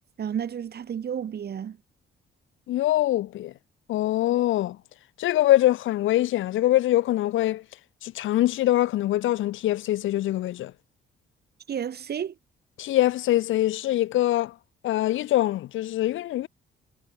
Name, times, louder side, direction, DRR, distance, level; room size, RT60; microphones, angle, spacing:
voice 1, 0.2-1.8 11.7-12.3, right 8 dB, 55° right, 2.6 m, -31 dB
voice 2, 2.7-3.5 3.9-4.8 5.2-7.6 8.0-10.7 12.8-14.5 14.8-16.5, left 14 dB, 80° left, 1.1 m, -23 dB
cardioid pair, 90°, 20 cm